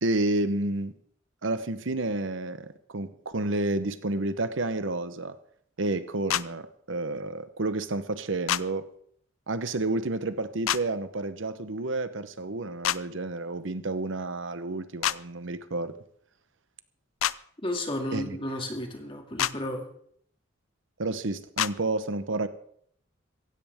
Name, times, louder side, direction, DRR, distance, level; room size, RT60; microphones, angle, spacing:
voice 1, 0.0-0.9 1.4-5.4 5.8-8.9 9.5-15.9 18.1-18.4 21.0-22.5, right 2 dB, 70° right, 12 dB, 0.9 m, -30 dB
sound 1, 6.3-6.4 8.5-8.6 10.7-10.8 12.8-13.0 15.0-15.2 17.2-17.4 19.4-19.5 21.6-21.7, left 11 dB, 85° left, 0.5 m, -26 dB
voice 2, 17.6-19.9, left 1 dB, 25° left, 3 dB, 2.4 m, -33 dB
16.0 x 16.0 x 3.6 m, 0.64 s
head